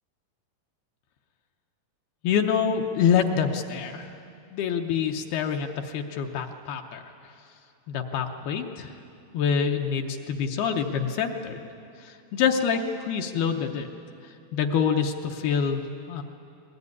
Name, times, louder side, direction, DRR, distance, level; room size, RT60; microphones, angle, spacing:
voice 1, 2.2-4.1 4.5-7.0 7.9-8.9 9.3-11.6 12.0-13.9 14.5-16.2, left 7 dB, 75° left, 3 dB, 2.6 m, -26 dB
21.5 x 20.0 x 9.6 m, 2.6 s
omnidirectional pair, 4.9 m